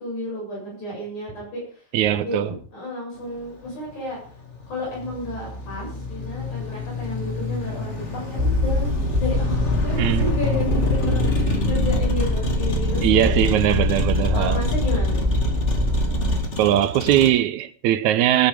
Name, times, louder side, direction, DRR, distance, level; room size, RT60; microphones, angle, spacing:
voice 1, 0.0-1.8 2.1-4.2 4.7-8.9 9.2-13.5 14.3-15.3, left 1 dB, 75° left, 8.7 m, -32 dB
voice 2, 1.9-2.5 10.0-10.3 13.0-14.6 16.6-18.5, right 12 dB, 80° right, 2.1 m, -20 dB
Motor vehicle (road), 3.2-17.3, left 3 dB, 25° left, 1.9 m, -28 dB
sound 1, 8.4-16.4, left 1 dB, 20° right, 1.4 m, -23 dB
18.0 x 10.0 x 5.0 m
omnidirectional pair, 3.4 m